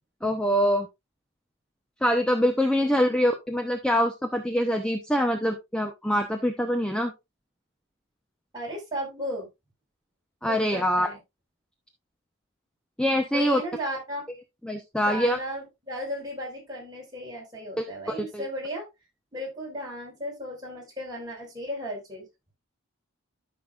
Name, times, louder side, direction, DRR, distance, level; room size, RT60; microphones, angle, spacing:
voice 1, 0.2-0.9 2.0-7.1 10.4-11.1 13.0-13.6 14.6-15.4 17.8-17.9 18.3-18.4, equal, 5° left, 5 dB, 0.8 m, -24 dB
voice 2, 2.7-3.2 8.5-9.5 10.5-11.2 13.3-14.2 15.0-18.9 19.3-22.3, equal, 20° right, -3 dB, 5.0 m, -35 dB
13.0 x 6.0 x 2.4 m, 0.22 s
head